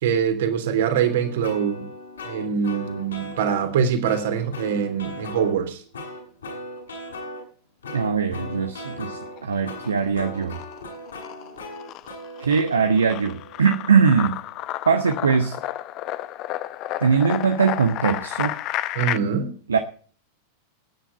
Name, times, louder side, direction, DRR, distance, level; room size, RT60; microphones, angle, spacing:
voice 1, 0.0-1.9 2.2-5.8 18.9-19.5, right 7 dB, 55° right, 3.0 m, -23 dB
sound 1, 1.0-3.8 4.0-5.5 5.9-7.4 7.8-14.8, left 1 dB, 70° left, 6.8 m, -38 dB
voice 2, 7.9-10.6 12.4-14.4 14.9-15.6 17.0-18.6 19.7-19.8, right 6 dB, 70° right, 1.1 m, -21 dB
sound 2, 9.2-10.0 10.4-19.2, left 14 dB, 40° left, 0.9 m, -31 dB
19.0 x 10.0 x 4.3 m
figure-of-eight pair, 90°, 0 cm